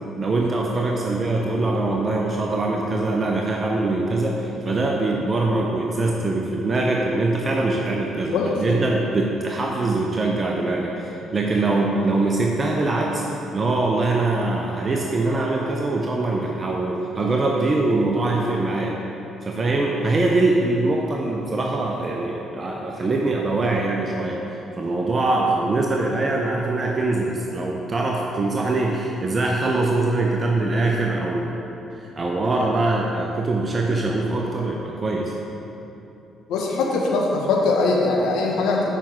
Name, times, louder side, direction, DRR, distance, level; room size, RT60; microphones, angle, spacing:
voice 1, 0.2-13.2 13.5-19.0 19.4-24.4 24.8-31.6 32.0-35.3, right 2 dB, 40° right, -1 dB, 0.8 m, -23 dB
voice 2, 36.5-39.0, left 3 dB, 75° left, -1 dB, 1.1 m, -21 dB
7.3 x 5.4 x 4.6 m, 3.0 s
hypercardioid pair, 55°, 0 cm